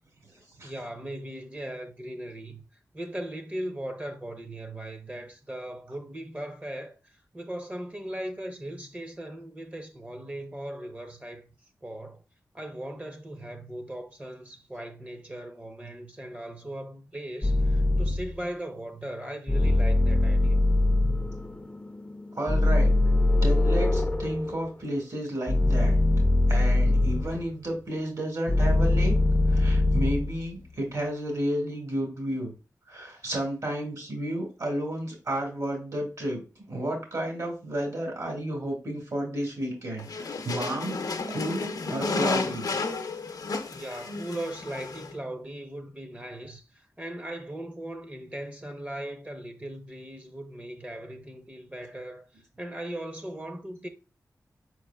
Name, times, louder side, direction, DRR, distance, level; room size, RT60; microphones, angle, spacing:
voice 1, 0.6-2.6 2.9-11.5 11.8-12.2 12.5-20.6 43.7-53.9, right 1 dB, 25° right, 0.7 m, -38 dB
sound 1, 17.4-18.4 19.5-24.7 25.5-27.5 28.5-30.5, left 2 dB, 15° left, 0.5 m, -23 dB
voice 2, 22.4-22.9 23.4-26.0 26.5-29.1 29.5-32.5 32.9-36.4 36.7-41.0 41.3-42.7, right 1 dB, 60° right, 2.0 m, -32 dB
sound 2, 40.0-45.1, left 3 dB, 75° left, 0.6 m, -32 dB
4.8 x 4.6 x 2.3 m
wide cardioid pair, 75°, 7 cm